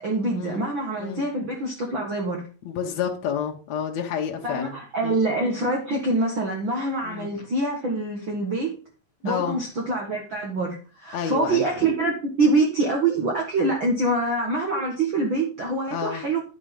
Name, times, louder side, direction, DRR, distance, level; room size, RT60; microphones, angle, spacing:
voice 1, 0.0-2.5 4.4-8.7 9.2-16.4, right 2 dB, 45° right, 0 dB, 1.7 m, -25 dB
voice 2, 2.7-4.8 5.0-5.2 7.0-7.3 9.3-9.6 11.1-11.7 15.9-16.2, left 8 dB, 65° left, 1 dB, 2.0 m, -29 dB
10.0 x 5.2 x 5.3 m, 0.37 s
omnidirectional pair, 3.9 m